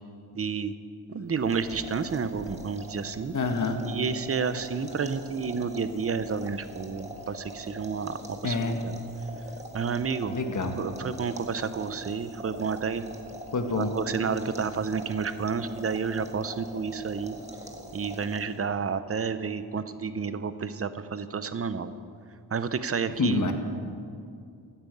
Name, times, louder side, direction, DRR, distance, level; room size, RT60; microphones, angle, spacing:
voice 1, 0.3-0.7 1.1-3.3 3.8-9.0 9.7-10.4 10.8-13.0 13.8-17.4 17.9-21.9 22.5-23.4, right 5 dB, 35° right, 12 dB, 0.7 m, -30 dB
sound 1, 1.3-18.7, right 1 dB, 15° right, 1.8 m, -43 dB
voice 2, 3.3-3.8 8.4-8.8 10.3-10.7 13.5-13.9 23.2-23.5, left 3 dB, 45° left, 5 dB, 1.5 m, -27 dB
14.5 x 8.9 x 8.1 m, 2.3 s
wide cardioid pair, 105°, 41 cm